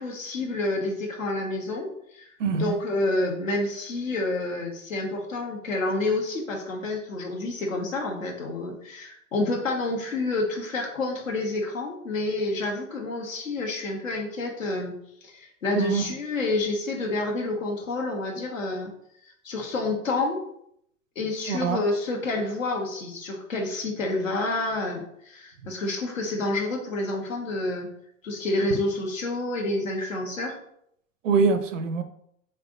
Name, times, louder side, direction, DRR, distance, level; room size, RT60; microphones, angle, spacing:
voice 1, 0.0-2.3 2.5-14.9 15.2-18.9 19.4-20.4 21.2-27.9 28.2-30.6, left 2 dB, 75° left, 0 dB, 1.1 m, -29 dB
voice 2, 2.4-2.8 15.8-16.0 21.5-21.8 31.2-32.0, right 5 dB, 75° right, 10 dB, 0.6 m, -24 dB
3.8 x 3.3 x 2.5 m, 0.72 s
figure-of-eight pair, 85°, 39 cm